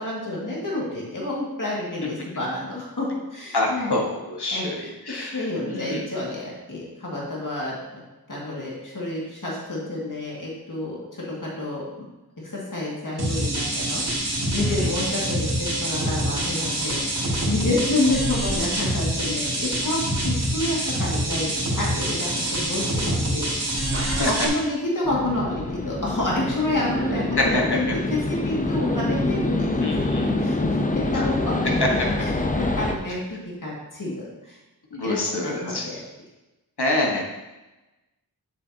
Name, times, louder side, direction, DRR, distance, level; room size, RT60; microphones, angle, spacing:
voice 1, 0.0-4.0 4.5-4.7 5.1-8.0 8.3-12.1 12.4-14.0 14.5-34.6 35.0-36.0, left 2 dB, 50° left, -4 dB, 2.1 m, -29 dB
voice 2, 3.5-5.4 5.7-6.0 14.6-14.9 24.2-24.3 27.4-27.6 29.8-30.4 31.1-31.2 34.9-35.8 36.8-37.2, left 2 dB, 75° left, 0 dB, 1.4 m, -26 dB
sound 1, 13.2-24.5, right 1 dB, 70° right, 2.3 m, -26 dB
sound 2, 23.9-25.0, right 1 dB, 35° right, 1.0 m, -36 dB
sound 3, 25.0-33.0, left 2 dB, 20° left, 0.6 m, -26 dB
7.4 x 6.8 x 2.8 m, 1.0 s
wide cardioid pair, 60°, 39 cm